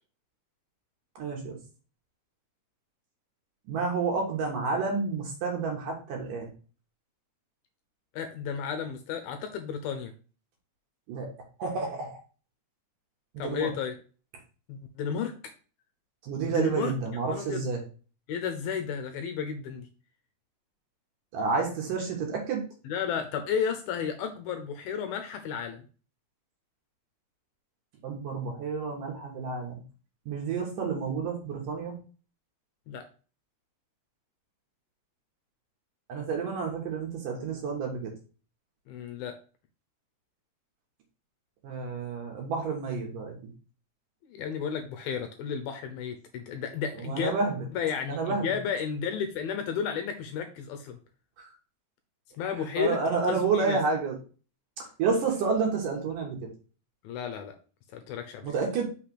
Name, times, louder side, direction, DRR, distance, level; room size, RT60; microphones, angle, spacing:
voice 1, 1.2-1.6 3.7-6.5 11.1-11.3 11.6-12.2 13.3-13.7 16.2-17.8 21.3-22.6 28.0-29.8 30.3-31.9 36.1-38.1 41.6-43.4 47.0-47.7 48.1-48.5 51.4-51.5 52.5-54.2 54.8-56.4 58.4-58.8, right 4 dB, 65° right, 1 dB, 2.4 m, -30 dB
voice 2, 8.1-10.1 13.4-13.9 14.7-15.3 16.4-16.9 17.3-17.6 18.3-19.9 22.8-25.9 32.9-33.0 38.9-39.4 44.3-47.4 47.7-51.0 52.4-53.0 53.3-53.8 57.0-57.5 57.9-58.5, left 7 dB, 75° left, 6 dB, 2.3 m, -32 dB
6.0 x 3.3 x 5.8 m, 0.37 s
omnidirectional pair, 4.7 m